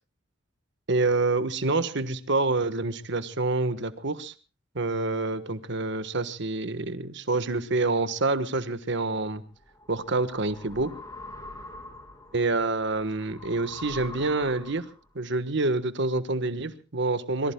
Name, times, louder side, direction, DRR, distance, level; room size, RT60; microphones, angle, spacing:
voice 1, 0.9-4.3 4.7-9.4 9.9-10.9 12.3-14.8 15.1-17.5, right 3 dB, 65° right, 12 dB, 1.4 m, -27 dB
sound 1, 9.4-15.1, left 2 dB, 20° left, 2.9 m, -44 dB
26.5 x 22.5 x 2.3 m, 0.33 s
head